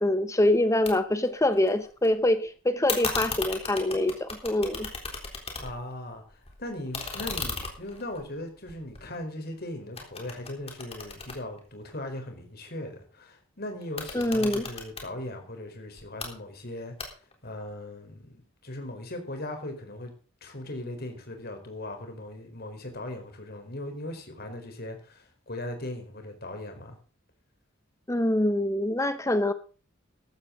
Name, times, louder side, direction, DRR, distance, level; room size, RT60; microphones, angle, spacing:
voice 1, 0.0-4.9 14.1-14.6 28.1-29.5, left 1 dB, 15° left, 0.9 m, -25 dB
sound 1, 0.9-1.0 1.2-2.1 2.9-5.9 6.3-9.5 10.0-12.2 13.8-15.1 16.0-16.3 17.0-17.5, left 4 dB, 30° left, 3.8 m, -36 dB
voice 2, 5.6-17.0 17.4-20.1 20.4-27.0, left 1 dB, 50° left, 4.3 m, -39 dB
15.0 x 13.0 x 3.9 m
head